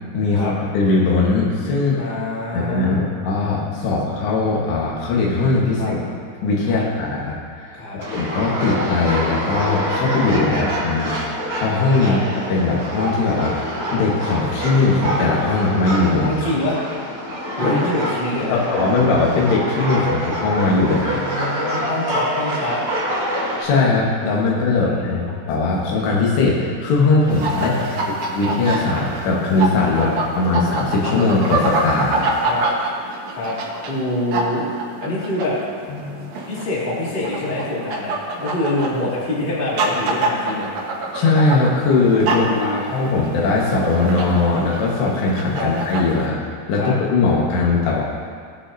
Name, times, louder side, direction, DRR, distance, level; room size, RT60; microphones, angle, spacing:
voice 1, 0.1-2.0 2.5-6.0 6.4-7.3 7.6-11.1 11.5-12.2 12.5-13.6 13.9-16.3 17.6-17.8 18.5-21.3 23.6-27.7 28.1-30.1 30.4-32.2 35.9-36.3 41.1-46.4 46.7-48.0, left 3 dB, 75° left, -3 dB, 3.6 m, -19 dB
voice 2, 2.0-3.1 5.8-5.9 6.7-6.8 7.7-8.0 10.5-10.6 12.0-12.2 16.2-16.8 17.6-18.6 20.8-22.8 24.8-25.2 27.5-28.1 29.9-30.1 32.4-32.7 33.3-34.6 35.0-35.6 36.4-40.7 42.3-42.8 45.5-45.7 46.7-46.9, left 1 dB, 30° left, -7 dB, 1.0 m, -26 dB
sound 1, 8.0-23.6, equal, 30° right, 1.6 m, -26 dB
sound 2, 27.3-46.3, right 2 dB, 75° right, 1.6 m, -26 dB
19.0 x 6.6 x 2.8 m, 2.1 s
omnidirectional pair, 5.1 m